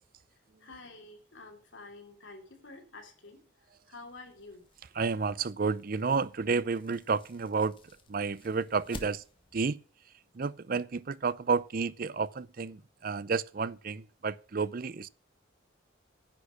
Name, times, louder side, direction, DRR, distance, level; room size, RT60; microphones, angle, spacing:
voice 1, 0.3-4.6, left 3 dB, 75° left, 3.0 m, -50 dB
sound 1, 4.0-9.6, left 2 dB, 25° left, 1.5 m, -52 dB
voice 2, 5.0-7.8 8.1-9.2 9.5-9.8 10.3-15.1, right 4 dB, 45° right, 0.5 m, -31 dB
9.9 x 6.4 x 8.3 m
head